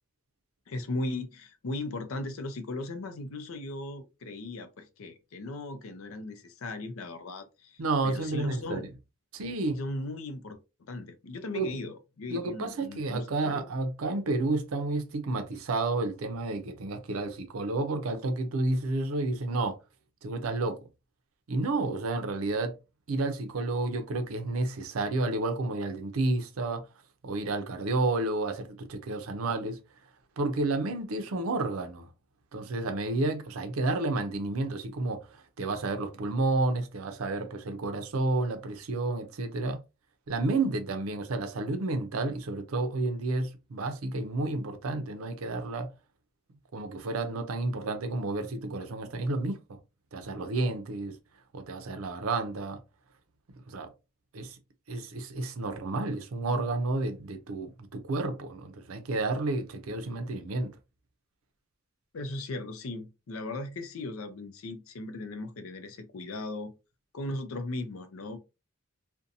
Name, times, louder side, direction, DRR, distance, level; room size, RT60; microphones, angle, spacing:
voice 1, 0.7-8.9 9.8-10.6 10.9-13.7 62.1-66.7 67.1-68.4, left 2 dB, 85° left, 0.5 m, -37 dB
voice 2, 7.8-8.9 9.3-9.8 11.5-11.7 12.3-19.8 20.2-20.8 21.5-22.7 23.1-26.8 27.2-29.8 30.4-32.1 32.5-39.8 40.3-45.9 46.7-49.8 50.1-51.2 51.5-52.8 53.7-53.9 54.3-54.6 54.9-60.7, right 2 dB, 90° right, 0.5 m, -31 dB
2.6 x 2.2 x 2.5 m
head